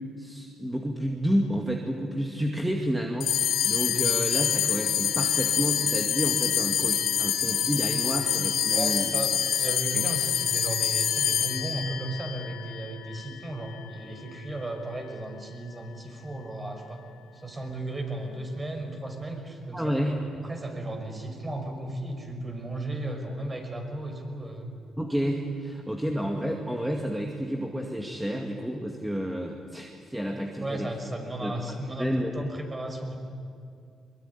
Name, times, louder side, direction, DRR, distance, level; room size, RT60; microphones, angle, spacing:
voice 1, 0.2-9.1 9.9-10.0 19.7-20.2 25.0-30.9 31.4-32.3, equal, 5° right, 1 dB, 2.3 m, -30 dB
sound 1, 3.2-13.9, left 9 dB, 80° left, 1.9 m, -26 dB
voice 2, 8.7-17.0 17.3-20.0 20.3-24.7 30.6-33.2, right 1 dB, 20° right, 4 dB, 5.7 m, -35 dB
23.0 x 22.0 x 9.9 m, 2.4 s
cardioid pair, 90°, 0 cm